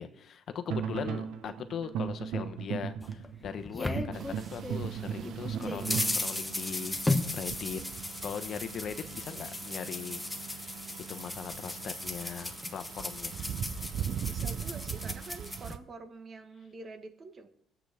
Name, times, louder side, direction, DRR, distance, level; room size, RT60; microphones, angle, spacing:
voice 1, 0.0-7.0 7.3-7.8 8.2-10.5 11.1-13.3, left 7 dB, 55° left, 9 dB, 0.9 m, -40 dB
sound 1, 0.7-6.2, right 8 dB, 80° right, 1.0 m, -36 dB
sound 2, 3.0-4.9 5.2-15.7, left 2 dB, 10° left, 1.2 m, -36 dB
sound 3, 4.1-15.8, right 9 dB, 60° right, 0.5 m, -41 dB
voice 2, 14.3-17.5, right 3 dB, 40° right, 7 dB, 1.3 m, -46 dB
18.0 x 8.0 x 3.5 m, 0.74 s
cardioid pair, 90°, 0 cm